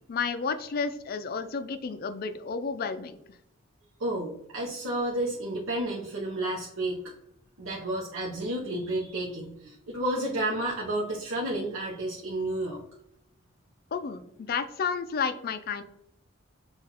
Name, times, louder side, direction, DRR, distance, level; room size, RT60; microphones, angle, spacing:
voice 1, 0.1-3.2 13.9-15.8, left 5 dB, 45° left, 9 dB, 0.4 m, -31 dB
voice 2, 4.0-7.1 7.6-12.8, right 1 dB, 80° right, -4 dB, 0.7 m, -31 dB
5.7 x 2.4 x 2.8 m, 0.76 s
head